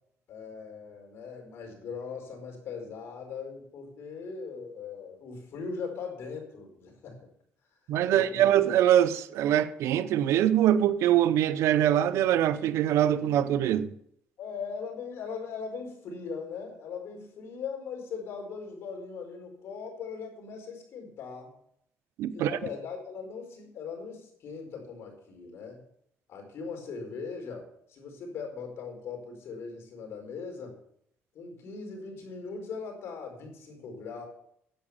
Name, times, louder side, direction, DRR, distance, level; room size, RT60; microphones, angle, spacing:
voice 1, 0.3-7.3 8.1-8.5 14.4-21.5 22.3-25.8 26.3-30.7 31.3-34.3, left 5 dB, 60° left, 4.5 m, -40 dB
voice 2, 7.9-13.9 22.2-22.6, right 11 dB, 80° right, 0.7 m, -23 dB
10.5 x 8.1 x 7.1 m
cardioid pair, 130°, 5 cm